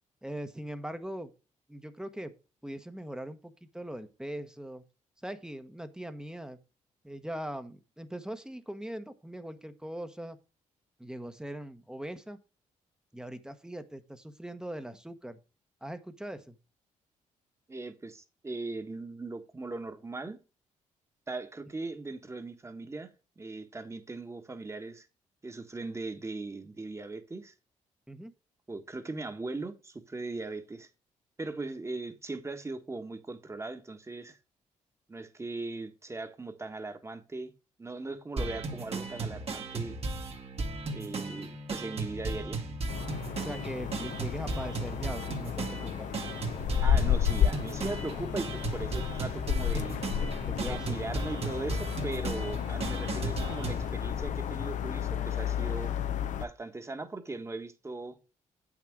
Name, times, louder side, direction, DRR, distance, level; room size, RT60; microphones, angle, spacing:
voice 1, 0.2-1.3 1.7-2.3 2.6-4.8 5.2-6.6 7.0-10.4 11.0-12.4 13.1-15.4 15.8-16.6 28.1-28.3 43.3-46.1 50.4-51.0, right 1 dB, 5° right, 1.0 m, -40 dB
voice 2, 17.7-20.4 21.3-25.1 25.4-27.5 28.7-30.9 31.4-34.4 35.1-37.5 37.8-40.0 40.9-42.7 46.8-49.9 50.7-55.9 56.4-58.2, right 3 dB, 20° right, 1.4 m, -39 dB
sound 1, 38.4-53.9, right 3 dB, 50° right, 1.6 m, -36 dB
sound 2, 42.9-56.5, left 9 dB, 70° left, 0.7 m, -32 dB
8.2 x 6.0 x 4.7 m
cardioid pair, 90°, 13 cm